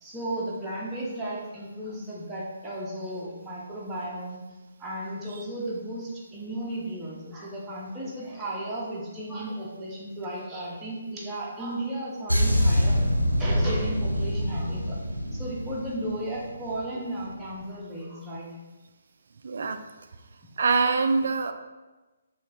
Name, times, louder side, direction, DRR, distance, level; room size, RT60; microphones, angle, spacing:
voice 1, 0.0-4.4 4.8-13.1 13.4-15.0 15.3-18.6, right 1 dB, 10° right, -7 dB, 1.0 m, -34 dB
sound 1, 12.3-16.9 17.1-17.4, equal, 85° right, 0.7 m, -25 dB
voice 2, 19.4-19.8 20.6-21.5, right 4 dB, 50° right, 7 dB, 0.4 m, -24 dB
5.1 x 3.3 x 2.9 m, 1.2 s
figure-of-eight pair, 135°, 0 cm